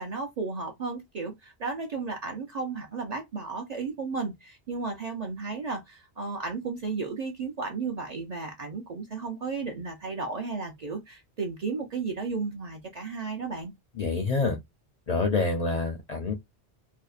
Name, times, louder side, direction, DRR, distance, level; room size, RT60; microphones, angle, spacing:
voice 1, 0.0-13.7, right 4 dB, 50° right, 0.5 m, -34 dB
voice 2, 14.0-14.6 15.1-16.3, left 3 dB, 50° left, 0.5 m, -27 dB
2.6 x 2.0 x 2.3 m
omnidirectional pair, 1.1 m